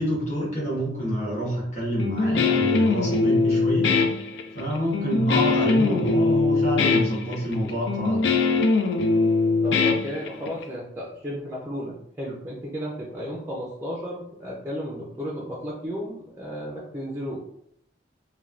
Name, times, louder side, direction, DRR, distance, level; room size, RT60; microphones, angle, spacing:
voice 1, 0.0-3.9 4.5-8.3, equal, 40° left, -6 dB, 1.2 m, -27 dB
Guitar, 2.0-10.6, left 3 dB, 80° left, 0.3 m, -22 dB
voice 2, 9.6-17.4, equal, 10° right, -4 dB, 0.4 m, -34 dB
3.2 x 2.2 x 2.4 m, 0.72 s
head